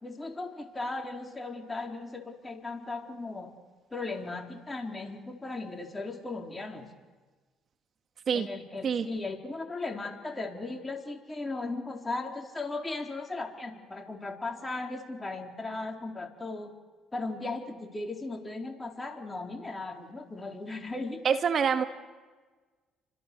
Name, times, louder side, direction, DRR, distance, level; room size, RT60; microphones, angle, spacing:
voice 1, 0.0-3.5 3.9-6.9 8.3-16.7 17.1-21.3, left 3 dB, 20° left, 2 dB, 4.3 m, -37 dB
voice 2, 21.2-21.8, right 6 dB, 50° right, 7 dB, 2.2 m, -25 dB
30.0 x 25.5 x 7.0 m, 1.4 s
supercardioid pair, 70°, 0 cm